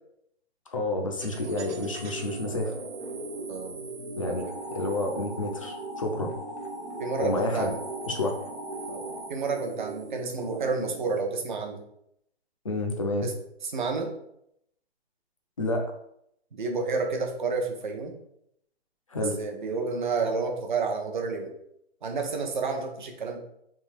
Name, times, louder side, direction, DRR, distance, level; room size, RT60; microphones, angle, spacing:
voice 1, 0.7-2.7 4.2-6.3 7.2-7.7 8.1-8.3 12.6-13.3 15.6-15.9 19.1-19.3, left 2 dB, 30° left, 3 dB, 0.5 m, -29 dB
sound 1, 1.2-11.2, right 2 dB, 85° right, 1.3 m, -38 dB
voice 2, 4.2-4.5 7.0-7.8 8.9-11.8 13.2-13.3 13.7-14.1 16.5-18.1 19.4-21.5 22.0-23.4, right 4 dB, 45° right, 3 dB, 0.8 m, -30 dB
3.6 x 2.7 x 4.6 m, 0.74 s
hypercardioid pair, 175°, 34 cm